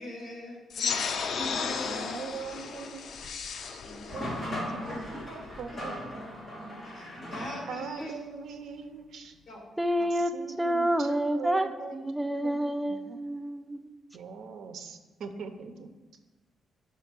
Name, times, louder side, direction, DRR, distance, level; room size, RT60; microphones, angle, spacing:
voice 1, 0.0-2.2 4.9-6.0 6.8-8.1 9.5-9.7, left 1 dB, 45° left, -1 dB, 2.1 m, -42 dB
sound 1, 0.7-5.7, left 6 dB, 60° left, 0.5 m, -34 dB
voice 2, 1.9-3.0 3.3-3.5 3.7-6.2 7.3-9.3 10.0-12.0 12.4-12.6 12.9-13.2 14.1-15.9, right 5 dB, 70° right, 7 dB, 0.6 m, -42 dB
sound 2, 4.1-8.0, equal, 20° left, 1.7 m, -38 dB
voice 3, 9.8-10.3 10.6-11.7 11.9-13.9, equal, 5° right, 7 dB, 0.4 m, -28 dB
5.6 x 4.9 x 6.0 m, 1.2 s
cardioid pair, 145°, 0 cm